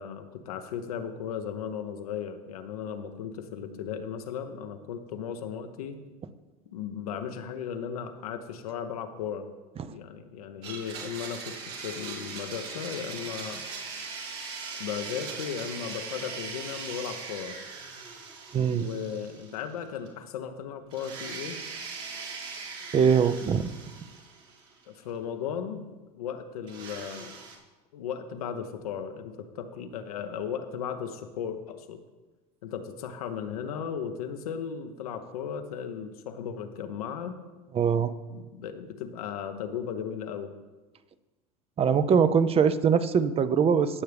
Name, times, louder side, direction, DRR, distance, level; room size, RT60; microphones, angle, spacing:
voice 1, 0.0-6.0 6.7-9.5 9.9-11.6 11.8-13.6 14.8-17.6 18.8-21.6 24.9-25.8 26.2-27.4 27.9-32.0 32.6-37.4 38.3-40.5, left 7 dB, 80° left, 7 dB, 0.9 m, -36 dB
Domestic sounds home sounds, 10.6-19.8 20.1-20.2 20.9-24.8 26.7-27.6, right 4 dB, 60° right, 2.9 m, -40 dB
voice 2, 18.5-18.9 22.9-23.7 37.7-38.1 41.8-44.0, right 6 dB, 30° right, 13 dB, 0.6 m, -22 dB
17.0 x 6.8 x 3.4 m, 1.2 s
hypercardioid pair, 85°, 19 cm